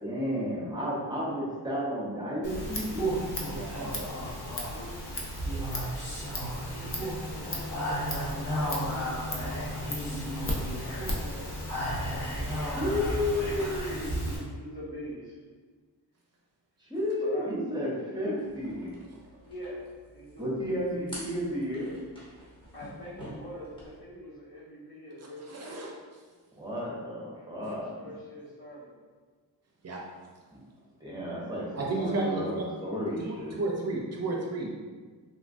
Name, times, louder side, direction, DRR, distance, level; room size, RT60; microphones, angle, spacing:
voice 1, 0.0-3.2 12.7-14.2 16.8-18.9 20.4-21.9 26.5-28.1 30.5-30.6 31.0-33.6, equal, 10° right, -6 dB, 0.7 m, -32 dB
Speech, 2.4-14.4, equal, 55° left, 1.0 m, -34 dB
Scissors, 2.4-11.4, left 1 dB, 35° left, 0.5 m, -38 dB
voice 2, 3.5-4.2 25.5-25.9 29.8-30.0 31.7-32.7 33.2-34.7, right 2 dB, 45° right, -2 dB, 0.5 m, -33 dB
voice 3, 4.1-5.0 6.4-11.7 12.9-15.4 17.2-17.5 19.4-21.3 22.7-25.9 27.5-28.9 31.1-32.6, equal, 70° left, -9 dB, 1.3 m, -45 dB
sound 1, 18.4-24.0, equal, 15° left, 0.9 m, -48 dB
3.4 x 2.1 x 2.5 m, 1.5 s
wide cardioid pair, 100°, 37 cm